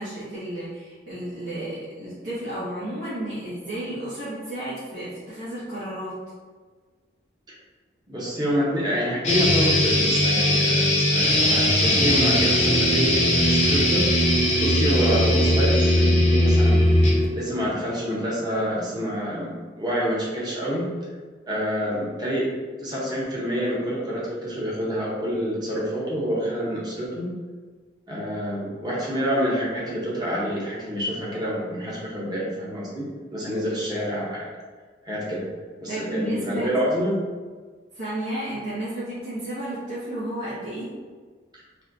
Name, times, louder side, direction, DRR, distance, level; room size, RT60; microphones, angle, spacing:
voice 1, 0.0-6.1 35.9-36.8 37.9-40.9, right 1 dB, 90° right, -14 dB, 1.4 m, -32 dB
voice 2, 8.1-14.1 14.6-16.9 17.3-19.5 19.8-20.8 21.5-22.5 22.8-27.3 28.1-34.5 35.1-35.4 35.8-37.2, equal, 25° right, -6 dB, 0.9 m, -27 dB
sound 1, 9.2-17.3, left 1 dB, 35° left, 0.7 m, -19 dB
4.1 x 2.8 x 2.6 m, 1.5 s
head